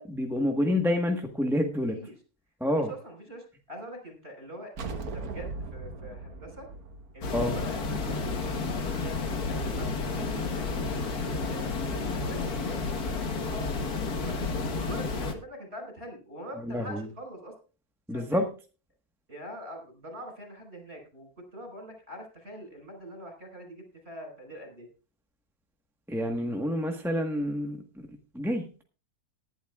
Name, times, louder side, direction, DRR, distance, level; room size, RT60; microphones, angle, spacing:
voice 1, 0.0-2.0 2.6-2.9 7.3-7.5 16.7-17.1 18.1-18.5 26.1-27.8 28.3-28.7, left 1 dB, ahead, 2 dB, 1.2 m, -28 dB
voice 2, 2.7-6.7 7.1-14.5 14.8-17.5 18.1-18.4 19.3-24.9, equal, 40° right, 3 dB, 5.4 m, -44 dB
sound 1, 4.8-8.2, right 3 dB, 70° right, 1.7 m, -39 dB
sound 2, 7.2-15.3, left 4 dB, 75° left, 1.9 m, -31 dB
19.5 x 11.5 x 2.4 m, 0.35 s
omnidirectional pair, 1.6 m